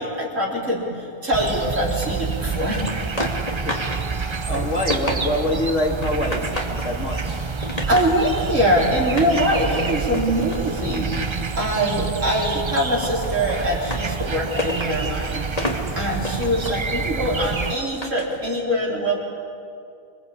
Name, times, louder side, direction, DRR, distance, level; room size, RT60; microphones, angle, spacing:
voice 1, 0.0-3.3 4.5-4.8 7.9-15.4 15.9-19.2, equal, 75° right, -2 dB, 4.7 m, -23 dB
sound 1, 1.3-17.8, right 4 dB, 30° right, 0.6 m, -28 dB
sound 2, 2.8-4.0 4.3-5.6 6.0-6.9 7.3-8.2 9.0-12.0 12.3-18.4, left 1 dB, 30° left, 3.1 m, -32 dB
voice 2, 4.5-6.4 6.8-7.2, left 1 dB, 65° left, 1 dB, 3.2 m, -24 dB
26.0 x 25.5 x 8.6 m, 2.4 s
omnidirectional pair, 1.3 m